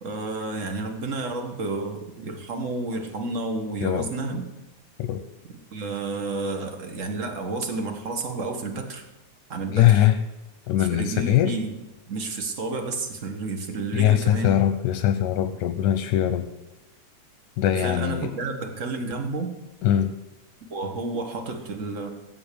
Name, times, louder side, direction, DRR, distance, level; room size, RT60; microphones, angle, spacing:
voice 1, 0.0-4.5 5.7-9.0 9.5-10.0 10.8-11.8 12.1-14.5 17.7-19.5 20.7-22.1, right 3 dB, 50° right, 4 dB, 0.9 m, -31 dB
voice 2, 9.7-10.2 10.7-11.5 13.9-16.5 17.6-18.3 19.8-20.1, left 11 dB, 85° left, 7 dB, 2.1 m, -21 dB
16.5 x 7.6 x 6.7 m, 0.95 s
omnidirectional pair, 3.3 m